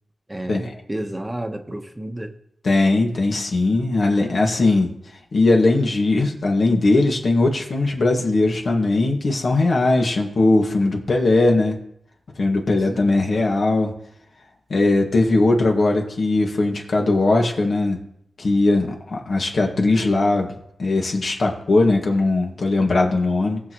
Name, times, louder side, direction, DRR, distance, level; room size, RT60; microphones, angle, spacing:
voice 1, 0.3-2.3 12.9-13.2, right 1 dB, 20° right, 1.1 m, -31 dB
voice 2, 2.6-4.9 5.3-11.8 12.4-13.9 14.7-18.0 18.4-20.5 20.8-23.6, left 2 dB, 65° left, 1.9 m, -19 dB
19.5 x 6.5 x 3.1 m
cardioid pair, 65°, 0 cm